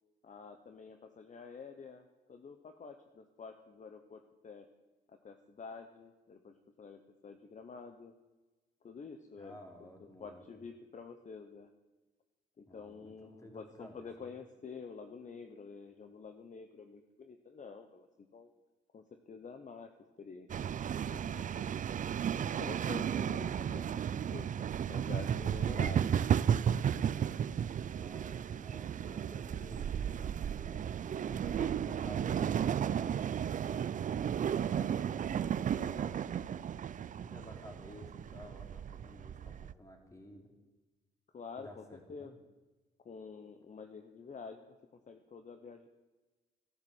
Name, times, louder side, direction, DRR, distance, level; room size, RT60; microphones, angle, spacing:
voice 1, 0.2-4.7 5.1-8.1 8.8-11.7 12.6-18.5 18.9-19.9 20.2-21.7 22.4-26.2 41.3-42.3 43.0-45.9, left 5 dB, 40° left, 7 dB, 1.1 m, -49 dB
voice 2, 9.4-10.6 12.7-14.3 27.9-30.9 31.3-36.2 37.2-40.5 41.6-42.3, left 1 dB, 15° left, 2 dB, 3.4 m, -53 dB
sound 1, 20.5-39.7, right 8 dB, 40° right, 0.4 m, -34 dB
13.0 x 12.0 x 7.4 m, 1.2 s
cardioid pair, 90°, 20 cm